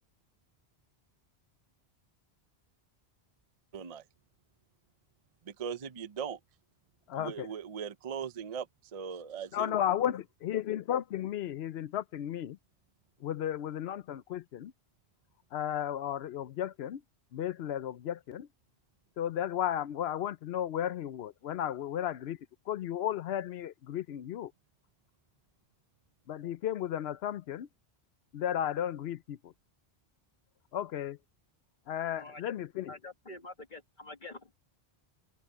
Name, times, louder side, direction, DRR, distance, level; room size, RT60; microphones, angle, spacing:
voice 1, 3.7-4.0 5.5-6.4 7.2-8.7 8.9-9.8, right 7 dB, 40° right, 0.6 m, -39 dB
voice 2, 7.1-7.5 9.5-12.6 13.2-14.7 15.5-17.0 17.3-18.5 19.2-22.4 22.7-24.5 26.3-27.7 28.3-29.5 30.7-31.2 31.9-32.9, left 10 dB, 75° left, 0.9 m, -34 dB
voice 3, 32.1-32.5 32.9-34.6, left 2 dB, 45° left, 1.8 m, -47 dB
open air
omnidirectional pair, 1.1 m